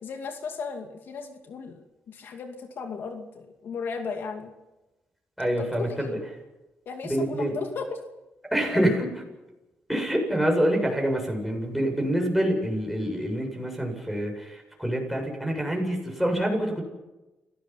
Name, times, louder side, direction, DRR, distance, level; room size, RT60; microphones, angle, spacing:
voice 1, 0.0-4.5 5.6-6.2 6.9-8.0, left 5 dB, 70° left, 5 dB, 2.4 m, -36 dB
voice 2, 5.4-6.1 7.0-7.6 8.5-9.1 9.9-16.8, equal, ahead, 1 dB, 7.8 m, -26 dB
29.5 x 17.5 x 5.9 m, 1.0 s
cardioid pair, 95°, 4 cm